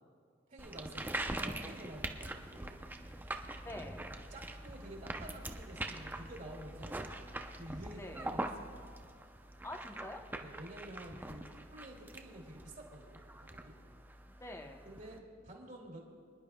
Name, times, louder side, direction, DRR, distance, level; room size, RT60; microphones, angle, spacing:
voice 1, 0.5-2.8 4.1-7.1 7.5-8.8 10.4-13.8 14.8-16.0, right 1 dB, 45° right, 0 dB, 2.4 m, -50 dB
sound 1, 0.6-15.2, right 1 dB, 10° right, 0.6 m, -43 dB
voice 2, 3.6-4.1 8.0-8.3 9.6-10.2 14.2-14.9, left 1 dB, 15° left, 3 dB, 0.9 m, -46 dB
27.5 x 10.5 x 2.3 m, 2.2 s
head